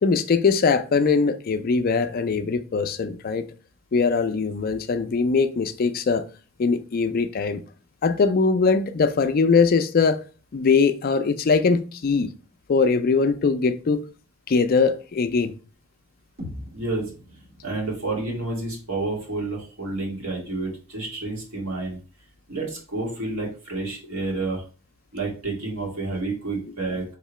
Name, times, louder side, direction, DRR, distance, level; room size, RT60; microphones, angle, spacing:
voice 1, 0.0-3.4 3.9-6.2 6.6-7.6 8.0-10.2 10.5-12.3 12.7-14.0 14.5-15.5, left 4 dB, 45° left, 0.4 m, -21 dB
sound 1, 16.4-20.4, left 1 dB, 45° right, 1.3 m, -44 dB
voice 2, 16.7-17.0 17.6-22.0 22.5-24.6 25.1-27.0, right 2 dB, 75° right, 2.1 m, -29 dB
4.7 x 3.6 x 3.1 m
head